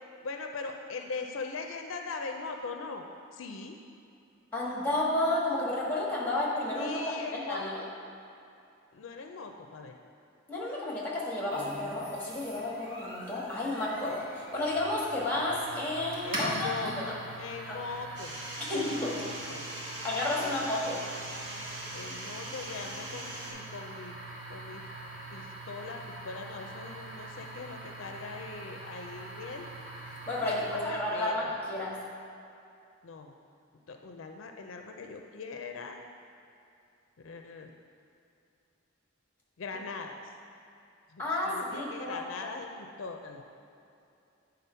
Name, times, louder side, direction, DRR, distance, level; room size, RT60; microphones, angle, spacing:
voice 1, 0.2-3.0 3.3-3.8 6.8-7.6 8.9-9.9 16.2-18.4 18.7-19.6 20.4-21.3 21.9-24.1 24.5-24.8 25.3-29.7 30.4-31.5 33.0-33.4 33.9-36.0 37.2-37.7 39.6-40.2 41.1-43.5, left 4 dB, 75° left, 4 dB, 0.5 m, -41 dB
voice 2, 4.5-7.0 7.5-7.8 10.5-16.7 17.0-17.1 17.7-17.8 18.7-19.1 20.0-21.0 30.3-31.9 41.2-42.5, left 1 dB, 10° left, -5 dB, 1.4 m, -31 dB
sound 1, 11.5-31.1, right 1 dB, 45° right, 1.6 m, -43 dB
sound 2, 18.2-23.5, right 1 dB, 60° right, 1.4 m, -41 dB
8.3 x 3.8 x 5.6 m, 2.6 s
head